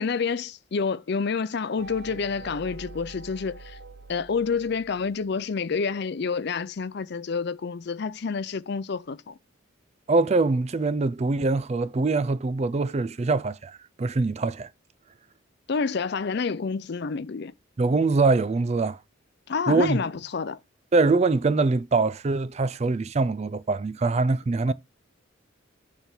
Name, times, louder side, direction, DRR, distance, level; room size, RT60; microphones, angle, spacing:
voice 1, 0.0-3.8 4.1-9.4 15.7-17.5 19.5-20.6 24.7-24.8, left 5 dB, 50° left, 0.5 m, -28 dB
sound 1, 1.8-5.5, right 3 dB, 50° right, 0.8 m, -45 dB
voice 2, 10.1-14.7 17.8-19.0 19.7-20.0 20.9-24.7, right 3 dB, 30° right, 0.3 m, -23 dB
6.8 x 3.4 x 5.9 m
head